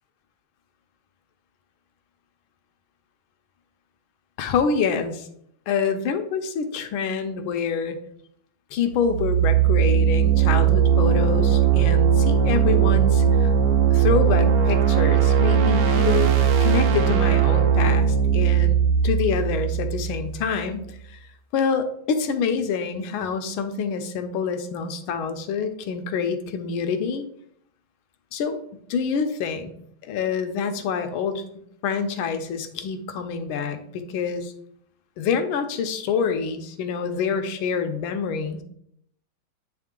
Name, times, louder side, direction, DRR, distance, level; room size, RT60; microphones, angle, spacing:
voice 1, 4.4-5.3 5.7-8.0 8.7-13.5 13.9-21.2 21.5-27.2 28.3-28.6 28.9-29.7 30.0-31.4 31.8-34.5 35.2-38.6, left 6 dB, 85° left, 7 dB, 1.5 m, -26 dB
sound 1, 9.0-20.7, right 8 dB, 65° right, 0.9 m, -19 dB
9.4 x 3.2 x 3.7 m, 0.70 s
omnidirectional pair, 2.2 m